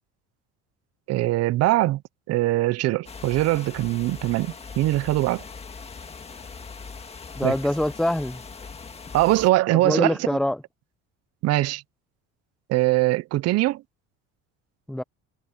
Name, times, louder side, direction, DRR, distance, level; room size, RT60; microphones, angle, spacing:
voice 1, 1.1-2.0 2.3-5.4 7.4-7.5 9.1-10.2 11.4-11.8 12.7-13.8, right 17 dB, 50° right, 0.6 m, -22 dB
sound 1, 3.1-9.5, left 5 dB, 20° left, 1.8 m, -40 dB
voice 2, 7.3-8.4 9.8-10.6 14.9-15.0, left 1 dB, ahead, 0.7 m, -24 dB
cardioid pair, 145°, 33 cm